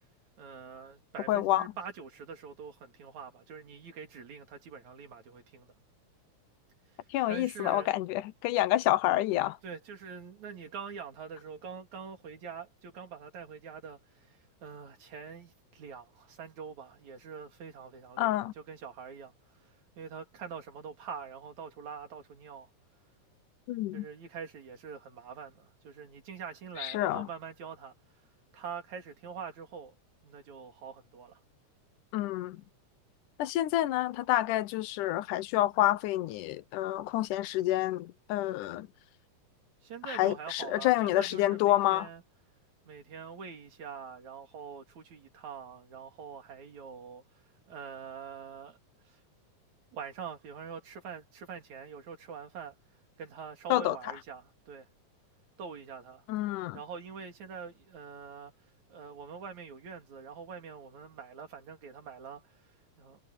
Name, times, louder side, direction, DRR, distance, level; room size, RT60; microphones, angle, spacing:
voice 1, 0.4-5.7 6.9-7.9 9.6-22.7 23.9-27.9 28.5-30.0 30.2-31.4 39.8-42.2 42.9-48.8 49.0-49.2 49.9-52.8 53.2-54.9 55.6-56.3 56.7-58.5 58.9-63.2, right 6 dB, 65° right, 4.0 m, -45 dB
voice 2, 1.3-1.6 7.1-9.6 18.2-18.5 23.7-24.1 26.8-27.3 32.1-32.6 33.4-38.9 40.1-42.1 53.7-54.0 56.3-56.8, left 15 dB, 85° left, 2.3 m, -28 dB
omnidirectional pair, 3.6 m